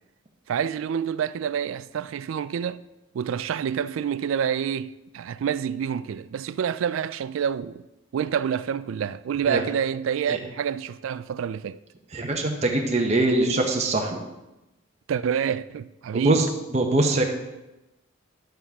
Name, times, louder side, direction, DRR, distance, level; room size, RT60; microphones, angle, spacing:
voice 1, 0.5-2.8 3.1-7.8 8.1-11.8 15.1-16.5, right 8 dB, 70° right, 0.3 m, -27 dB
voice 2, 12.1-14.3 16.1-17.2, right 2 dB, 30° right, 0.7 m, -23 dB
10.0 x 7.0 x 3.5 m
head